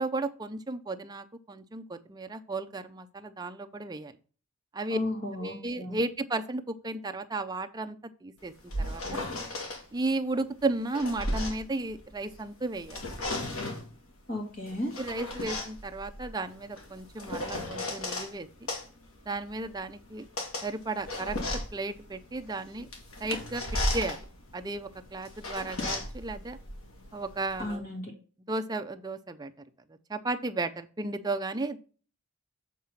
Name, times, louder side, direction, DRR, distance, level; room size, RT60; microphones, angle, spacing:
voice 1, 0.0-4.1 4.7-5.0 5.4-8.5 8.8-9.2 9.9-13.0 15.0-18.5 19.3-20.3 20.6-21.4 21.7-22.9 23.2-23.6 23.9-24.2 24.5-26.6 27.1-27.8 28.5-29.5 30.1-31.8, right 2 dB, 20° right, 7 dB, 0.4 m, -34 dB
voice 2, 4.9-6.0 14.3-14.9 27.6-28.1, left 1 dB, 40° left, 0 dB, 2.3 m, -34 dB
sound 1, 8.4-9.8 10.6-12.4 12.8-13.9 14.7-18.3 18.7-27.8, left 1 dB, 80° left, 1.8 m, -35 dB
7.4 x 3.7 x 5.6 m, 0.39 s
head